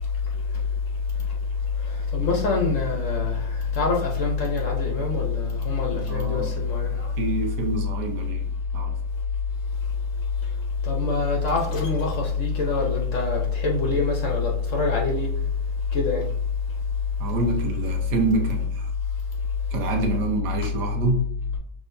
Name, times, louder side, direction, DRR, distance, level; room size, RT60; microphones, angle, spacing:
voice 1, 2.1-3.4 3.7-7.1 10.8-15.3 15.9-16.2, left 4 dB, 55° left, 0 dB, 1.1 m, -24 dB
voice 2, 6.0-6.6 7.2-9.0 17.2-18.9 19.7-21.3, right 3 dB, 85° right, 2 dB, 1.5 m, -27 dB
6.0 x 3.4 x 2.6 m, 0.66 s
omnidirectional pair, 1.8 m